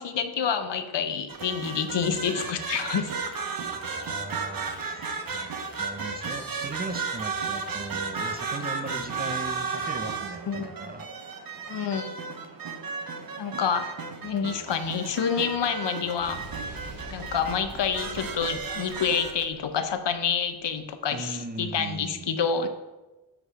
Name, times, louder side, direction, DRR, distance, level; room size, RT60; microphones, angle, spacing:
voice 1, 0.0-3.1 10.5-10.7 11.7-12.1 13.4-13.9 14.2-16.4 17.1-22.7, left 7 dB, 70° left, 9 dB, 0.7 m, -28 dB
sound 1, 1.3-19.4, right 4 dB, 50° right, 0.9 m, -34 dB
voice 2, 3.7-5.5 5.8-11.1 21.1-22.3, right 3 dB, 20° right, 8 dB, 0.4 m, -38 dB
Explosion, 16.2-20.5, right 2 dB, 65° right, 1.3 m, -44 dB
7.8 x 3.2 x 6.1 m, 1.1 s
cardioid pair, 60°, 44 cm